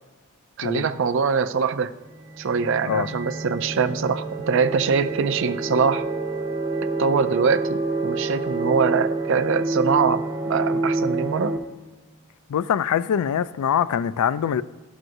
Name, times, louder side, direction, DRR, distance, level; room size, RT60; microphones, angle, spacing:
voice 1, 0.6-1.9 2.4-6.0 7.0-7.8 8.0-11.5, right 5 dB, 55° right, 0.4 m, -23 dB
sound 1, 2.0-11.6, right 2 dB, 25° right, 1.4 m, -28 dB
voice 2, 12.5-14.6, left 8 dB, 85° left, 0.3 m, -23 dB
13.5 x 6.2 x 2.6 m
head